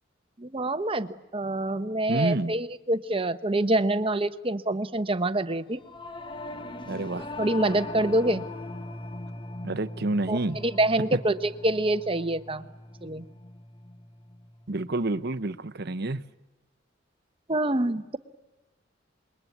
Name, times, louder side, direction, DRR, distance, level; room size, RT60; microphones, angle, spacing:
voice 1, 0.4-5.8 7.4-8.4 10.3-12.7 13.0-13.2 17.5-18.2, right 1 dB, 30° right, 11 dB, 1.1 m, -26 dB
voice 2, 2.1-2.5 6.8-7.3 9.6-10.6 11.1-11.2 14.7-16.2, right 2 dB, 55° right, 13 dB, 1.0 m, -28 dB
Singing / Musical instrument, 5.8-15.4, left 2 dB, 25° left, 1.2 m, -40 dB
27.0 x 22.0 x 9.5 m, 1.1 s
head